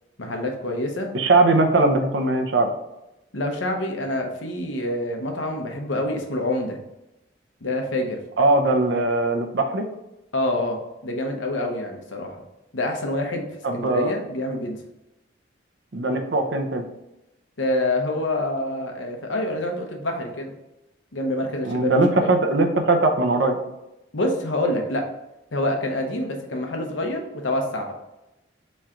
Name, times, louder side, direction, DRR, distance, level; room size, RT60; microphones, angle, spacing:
voice 1, 0.2-1.1 3.3-6.8 7.6-8.2 10.3-12.4 12.7-13.5 13.7-14.8 17.6-20.5 21.1-22.3 24.1-25.0 25.5-27.9, left 1 dB, 85° left, 2 dB, 0.8 m, -26 dB
voice 2, 1.1-2.7 8.4-9.9 13.6-14.1 15.9-16.8 21.6-23.6, right 2 dB, 70° right, 4 dB, 0.6 m, -20 dB
3.7 x 3.2 x 4.4 m, 0.93 s
head